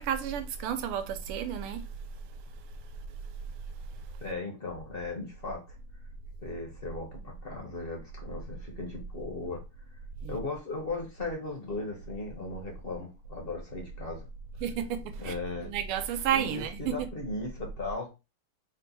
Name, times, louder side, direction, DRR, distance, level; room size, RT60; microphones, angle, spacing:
voice 1, 0.0-1.8 10.2-10.4 14.6-15.3 15.6-17.1, right 9 dB, 85° right, 1.5 m, -31 dB
voice 2, 4.2-5.8 6.4-9.6 10.3-14.2 15.2-15.7 16.3-18.1, left 3 dB, 50° left, 0.6 m, -37 dB
3.9 x 2.2 x 4.0 m
omnidirectional pair, 2.4 m